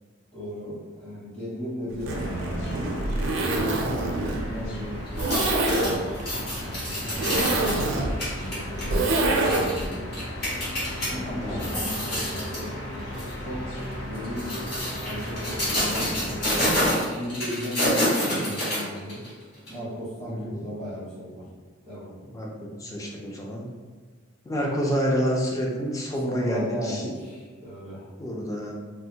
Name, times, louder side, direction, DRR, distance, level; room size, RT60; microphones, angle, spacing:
voice 1, 0.3-6.1 6.6-7.6 8.3-10.2 10.7-13.6 14.0-14.7 15.0-16.7 17.1-19.3 19.7-21.4 21.9-22.1 26.2-28.1, equal, 35° left, -9 dB, 1.2 m, -36 dB
Zipper (clothing), 1.9-9.9, right 2 dB, 65° right, 0.4 m, -26 dB
sound 1, 2.1-16.9, equal, 80° left, 0.7 m, -36 dB
sound 2, 5.1-11.1 11.5-12.7 13.1-13.3 14.1-19.3 19.7-19.8, left 1 dB, 55° left, 1.3 m, -28 dB
voice 2, 7.0-7.4 11.1-11.7 20.3-20.5 22.3-23.7 24.5-27.0 28.2-28.7, equal, 15° left, -2 dB, 0.4 m, -29 dB
3.4 x 2.0 x 2.8 m, 1.4 s
head